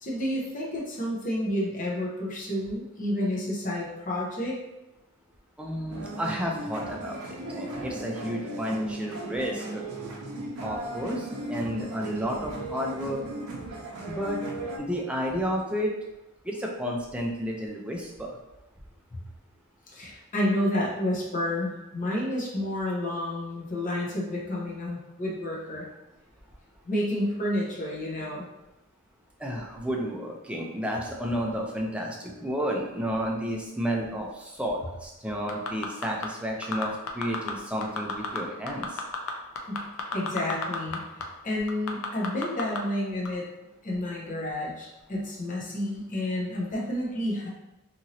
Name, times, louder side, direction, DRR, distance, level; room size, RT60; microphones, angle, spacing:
voice 1, 0.0-4.6 19.1-19.2 19.9-25.9 26.8-28.5 39.7-39.8 40.1-43.4 43.8-47.5, left 1 dB, 35° left, -4 dB, 0.7 m, -30 dB
voice 2, 5.6-9.9 10.6-13.2 14.1-14.4 14.8-15.9 16.4-18.3 29.4-39.0, equal, 5° right, -1 dB, 0.4 m, -31 dB
sound 1, 5.9-14.8, right 2 dB, 75° right, 0.6 m, -36 dB
sound 2, 35.5-36.3 36.6-37.5 37.8-38.4 38.7-41.0 41.2-41.3 41.7-42.8 43.2-43.3, left 6 dB, 65° left, 0.4 m, -31 dB
2.9 x 2.7 x 2.7 m, 0.98 s
head